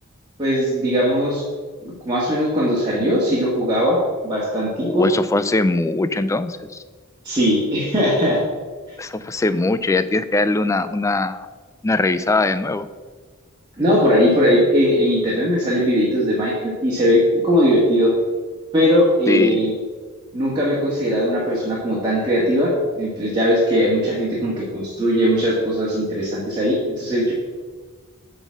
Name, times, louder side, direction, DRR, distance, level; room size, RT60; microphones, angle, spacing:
voice 1, 0.4-1.4 1.8-4.0 4.2-5.1 7.2-8.4 13.8-18.1 18.7-19.7 20.3-27.3, equal, 20° right, -6 dB, 1.7 m, -19 dB
voice 2, 4.8-6.8 9.0-11.5 11.8-12.9 19.3-19.6, left 2 dB, 15° left, 12 dB, 0.3 m, -21 dB
9.0 x 4.0 x 6.2 m, 1.4 s
head